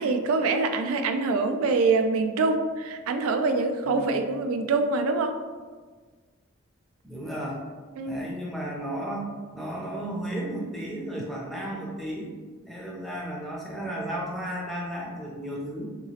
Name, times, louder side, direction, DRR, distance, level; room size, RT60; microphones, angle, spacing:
voice 1, 0.0-5.4 8.0-8.2, right 3 dB, 90° right, 6 dB, 0.3 m, -25 dB
voice 2, 7.0-7.6 8.1-9.2 9.5-12.3 12.7-16.0, right 1 dB, ahead, -3 dB, 0.4 m, -34 dB
2.9 x 2.8 x 2.8 m, 1.5 s
head